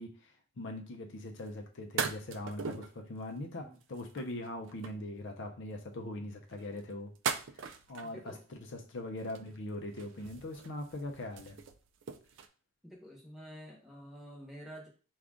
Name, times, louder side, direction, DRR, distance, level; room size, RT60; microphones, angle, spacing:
voice 1, 0.0-7.1 7.5-11.6, left 1 dB, 55° left, 4 dB, 0.5 m, -41 dB
sound 1, 1.4-1.5 2.0-3.0 3.8-5.1 6.5-8.4 9.2-9.7 9.9-12.5, right 6 dB, 55° right, 0.4 m, -40 dB
voice 2, 8.0-8.4 12.8-14.9, equal, ahead, -3 dB, 1.0 m, -49 dB
4.9 x 2.4 x 3.6 m, 0.38 s
head